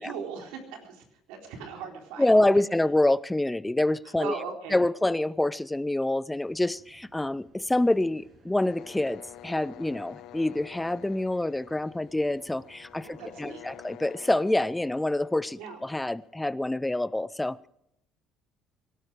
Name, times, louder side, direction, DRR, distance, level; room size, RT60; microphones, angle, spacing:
voice 1, 0.0-2.6 4.0-4.8 13.0-13.6 15.6-15.8, right 5 dB, 90° right, 3 dB, 4.0 m, -39 dB
voice 2, 2.2-4.3 4.7-17.7, left 1 dB, 10° left, 19 dB, 0.5 m, -26 dB
sound 1, 6.4-13.8, right 2 dB, 40° right, 6.8 m, -59 dB
sound 2, 8.6-16.3, left 14 dB, 70° left, 0.9 m, -49 dB
22.5 x 12.5 x 4.9 m, 0.76 s
cardioid pair, 95°, 0 cm